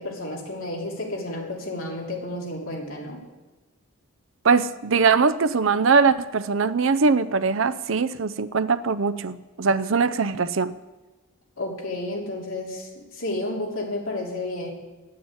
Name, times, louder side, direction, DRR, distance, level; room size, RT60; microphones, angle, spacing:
voice 1, 0.0-3.2 11.6-14.7, left 2 dB, 65° left, -2 dB, 3.2 m, -31 dB
voice 2, 4.4-10.7, right 5 dB, 60° right, 13 dB, 0.6 m, -21 dB
10.5 x 9.4 x 8.8 m, 1.2 s
head